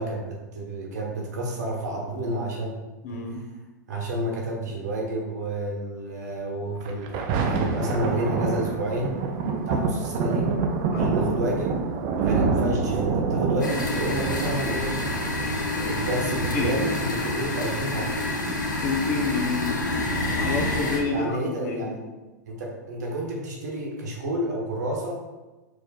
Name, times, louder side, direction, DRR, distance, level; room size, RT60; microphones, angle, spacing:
voice 1, 0.0-2.7 3.1-3.4 3.9-9.2 9.7-10.5 10.9-11.8 12.2-15.0 15.3-18.2 20.3-20.4 21.1-22.0 22.5-25.2, right 1 dB, 65° right, -2 dB, 1.3 m, -30 dB
voice 2, 3.0-3.5 10.9-11.3 15.3-15.6 16.3-16.8 18.5-19.9 20.3-22.0, left 3 dB, 55° left, 1 dB, 0.9 m, -30 dB
Thunder, 6.8-17.8 18.4-18.5, right 4 dB, 40° right, 0.5 m, -27 dB
sound 1, 13.6-21.0, left 2 dB, 75° left, 1.1 m, -28 dB
4.9 x 2.4 x 4.3 m, 1.2 s
figure-of-eight pair, 100°, 10 cm